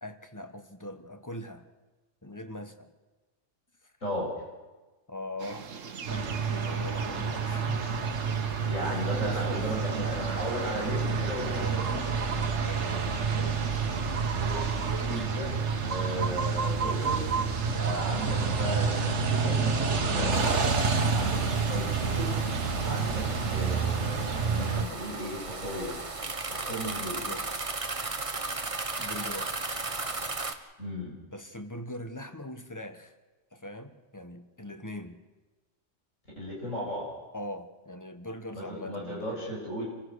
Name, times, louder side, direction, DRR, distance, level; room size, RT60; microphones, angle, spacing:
voice 1, 0.0-1.7 2.2-2.9 3.8-3.9 5.1-5.7 6.0-7.8 9.2-9.7 11.5-11.8 12.6-13.6 21.7-22.2 27.3-27.6 29.0-29.7 31.3-33.1 33.5-35.2 37.3-39.4, left 1 dB, 15° left, 8 dB, 1.3 m, -41 dB
voice 2, 4.0-4.3 8.7-12.1 13.8-15.5 15.9-17.2 17.7-20.8 21.1-22.4 22.8-26.0 26.5-27.3 30.8-31.2 36.4-37.1 38.5-39.8, equal, 80° left, -2 dB, 7.3 m, -36 dB
sound 1, 5.4-20.0, right 5 dB, 80° right, 1.5 m, -38 dB
sound 2, 6.1-24.8, right 5 dB, 65° right, 1.6 m, -29 dB
sound 3, 20.3-30.5, right 3 dB, 25° right, 1.2 m, -36 dB
27.0 x 16.0 x 6.5 m, 1.2 s
omnidirectional pair, 1.3 m